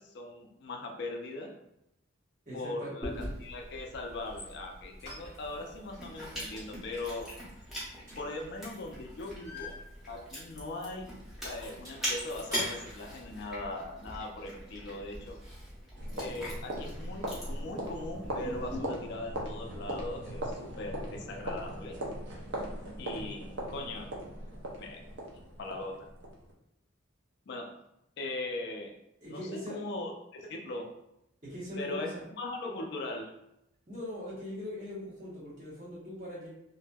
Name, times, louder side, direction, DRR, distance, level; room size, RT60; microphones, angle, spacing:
voice 1, 0.0-1.5 2.5-7.3 8.2-9.8 10.1-11.1 11.4-15.4 16.1-22.0 23.0-24.1 24.8-25.0 25.6-26.1 27.5-27.7 28.2-28.9 29.3-30.9 31.8-33.3, left 2 dB, 55° left, 2 dB, 0.3 m, -40 dB
voice 2, 2.4-2.9 29.2-29.8 31.4-32.2 33.9-36.5, left 1 dB, 40° right, -8 dB, 1.1 m, -40 dB
Chewing mastication, 3.0-18.8, equal, ahead, 0.6 m, -42 dB
sound 1, 4.2-4.5 5.0-5.7 6.0-6.3 6.6-8.6 8.9-10.4 10.7-10.9 11.1-12.9, left 2 dB, 20° right, 1.4 m, -48 dB
sound 2, 16.0-26.5, equal, 60° right, 0.5 m, -39 dB
2.6 x 2.5 x 2.2 m, 0.84 s
head